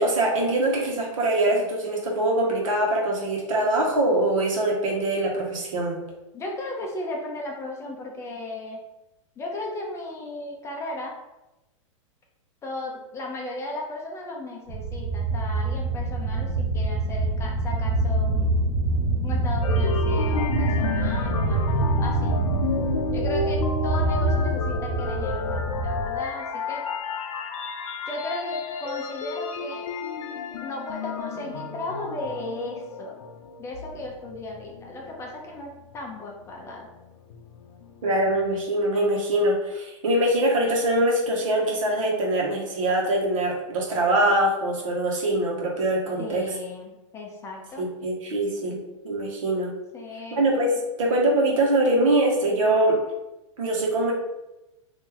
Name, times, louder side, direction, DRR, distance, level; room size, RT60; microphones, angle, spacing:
voice 1, 0.0-6.0 38.0-46.4 47.8-48.8 49.0-49.7 50.3-53.0 53.6-54.1, right 1 dB, 75° right, -1 dB, 1.1 m, -23 dB
voice 2, 6.3-8.8 9.4-11.2 12.6-18.8 19.2-22.4 23.1-26.9 28.1-29.9 30.6-33.2 33.6-36.9 46.2-47.9 49.9-50.5, left 2 dB, 15° left, 0 dB, 0.5 m, -35 dB
sound 1, 14.7-26.1, right 2 dB, 40° right, 0.8 m, -25 dB
sound 2, 19.6-35.4 35.8-38.6, left 5 dB, 85° left, 0.5 m, -32 dB
2.8 x 2.7 x 3.8 m, 0.97 s
hypercardioid pair, 140°, 17 cm